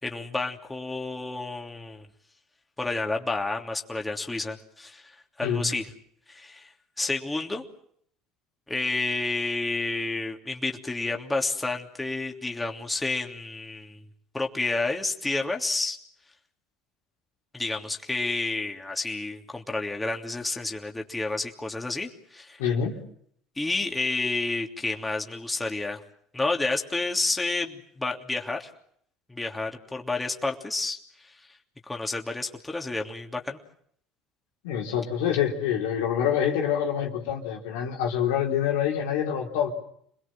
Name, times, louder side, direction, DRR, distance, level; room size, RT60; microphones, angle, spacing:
voice 1, 0.0-2.1 2.8-5.9 6.3-7.6 8.7-14.0 14.3-16.0 17.5-22.6 23.6-26.0 26.3-28.7 29.3-31.0 31.2-31.5 31.9-33.6, left 3 dB, 15° left, 2 dB, 3.1 m, -30 dB
voice 2, 22.6-23.0 34.6-39.7, left 9 dB, 80° left, 0 dB, 3.9 m, -26 dB
28.0 x 21.0 x 7.7 m, 0.68 s
hypercardioid pair, 75°, 0 cm